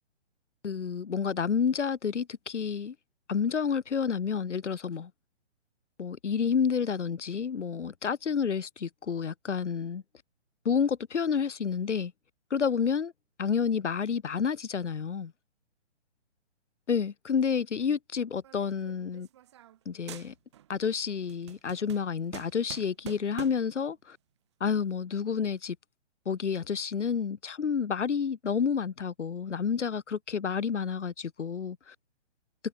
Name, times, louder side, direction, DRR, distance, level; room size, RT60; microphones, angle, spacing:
voice 1, 0.6-2.9 3.3-5.1 6.0-10.0 10.6-12.1 12.5-13.1 13.4-15.3 16.9-19.3 19.9-20.3 20.7-24.2 24.6-25.8 26.3-31.9, left 6 dB, 75° left, 2.4 m, -29 dB
sound 1, 18.4-19.8 20.1-20.7 21.1-23.8, right 12 dB, 25° right, 2.0 m, -47 dB
hypercardioid pair, 175°, 36 cm